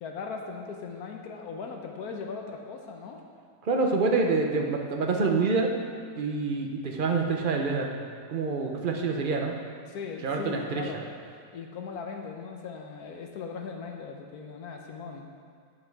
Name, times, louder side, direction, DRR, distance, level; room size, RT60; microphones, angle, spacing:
voice 1, 0.0-3.2 9.9-11.0 11.5-15.4, left 5 dB, 70° left, 2 dB, 1.2 m, -38 dB
voice 2, 3.6-5.7 6.2-7.9 8.3-9.5 10.2-10.8, right 4 dB, 55° right, 2 dB, 0.5 m, -26 dB
7.7 x 7.6 x 4.6 m, 2.1 s
omnidirectional pair, 1.8 m